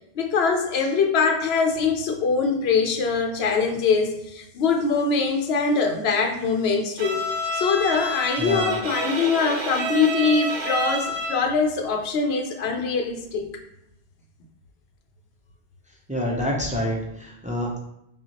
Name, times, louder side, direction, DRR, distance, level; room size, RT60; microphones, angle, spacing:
voice 1, 0.2-7.3 7.5-13.5, left 5 dB, 80° left, 4 dB, 0.8 m, -23 dB
Bowed string instrument, 7.0-11.5, right 1 dB, 50° right, 0.7 m, -29 dB
voice 2, 16.1-17.8, equal, 10° right, -2 dB, 0.5 m, -27 dB
5.6 x 2.4 x 2.8 m, 0.82 s
omnidirectional pair, 1.0 m